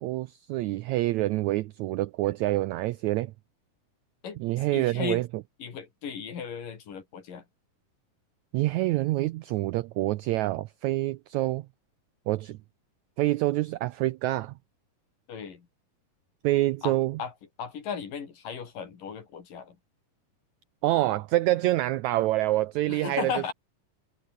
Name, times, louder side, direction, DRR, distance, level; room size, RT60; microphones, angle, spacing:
voice 1, 0.0-3.3 4.4-5.3 8.5-11.7 12.3-12.6 13.2-14.5 16.4-17.2 20.8-23.3, right 17 dB, 85° right, 1.6 m, -26 dB
voice 2, 4.7-5.3 5.6-7.4 15.3-15.7 16.8-17.3 17.6-19.8 22.9-23.5, left 7 dB, 70° left, 5.0 m, -36 dB
omnidirectional pair, 4.0 m